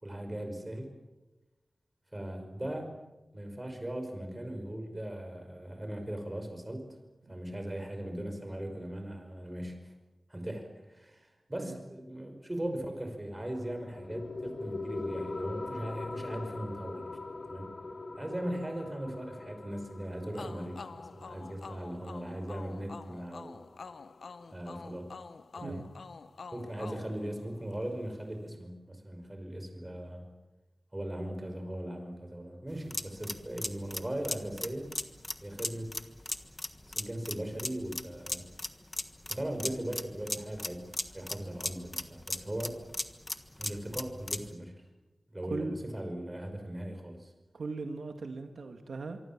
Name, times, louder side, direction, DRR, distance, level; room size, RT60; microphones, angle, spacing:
voice 1, 0.0-0.9 2.1-2.9 3.3-6.8 7.3-9.9 10.3-17.1 17.5-17.7 18.2-23.5 24.5-25.1 25.6-25.8 26.5-30.3 30.9-34.9 35.4-35.9 36.9-38.4 39.3-40.8 41.1-42.8 43.6-44.7 45.3-47.3, right 1 dB, 20° right, 5 dB, 5.4 m, -39 dB
sound 1, 13.3-24.4, left 3 dB, 55° left, 2.3 m, -42 dB
sound 2, 20.3-27.9, left 4 dB, 80° left, 0.9 m, -47 dB
sound 3, 32.7-44.5, left 1 dB, 20° left, 1.4 m, -38 dB
voice 2, 47.5-49.2, right 3 dB, 85° right, 6 dB, 2.0 m, -38 dB
25.0 x 24.0 x 7.5 m, 1.1 s
wide cardioid pair, 95°, 0 cm